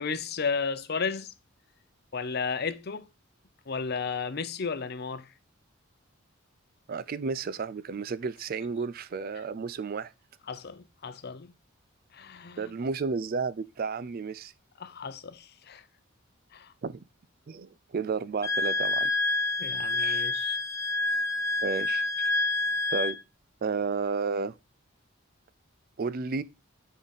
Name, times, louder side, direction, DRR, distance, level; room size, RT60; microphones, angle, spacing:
voice 1, 0.0-1.3 2.1-3.1 3.7-5.3 10.5-11.5 12.1-12.7 14.8-15.8 16.5-16.7 19.6-20.6, left 5 dB, 50° left, 0.6 m, -33 dB
voice 2, 6.9-10.1 12.6-14.5 16.8-17.0 17.5-19.1 20.0-20.3 21.6-22.3 22.9-23.2 23.6-24.6 26.0-26.4, right 4 dB, 45° right, 0.4 m, -32 dB
Wind instrument woodwind instrument, 18.4-23.2, left 2 dB, 15° left, 0.7 m, -28 dB
9.3 x 3.9 x 4.0 m
head